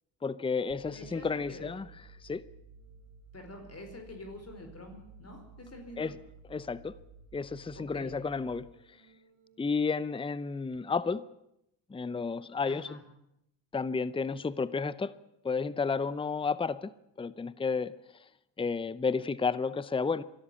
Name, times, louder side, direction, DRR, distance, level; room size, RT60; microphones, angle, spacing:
voice 1, 0.2-1.9 2.2-2.4 6.0-6.1 6.5-7.0 7.3-8.7 9.6-11.3 11.9-12.9 13.7-15.1 15.4-16.9 17.2-17.9 18.6-20.2, left 5 dB, 10° left, 18 dB, 0.7 m, -31 dB
sound 1, 0.7-9.7, right 4 dB, 80° right, 3.2 m, -54 dB
voice 2, 0.9-1.7 3.3-6.1 7.7-8.1 12.7-13.0, left 2 dB, 30° left, 5 dB, 4.8 m, -46 dB
23.0 x 13.0 x 8.5 m, 0.81 s
supercardioid pair, 75°, 46 cm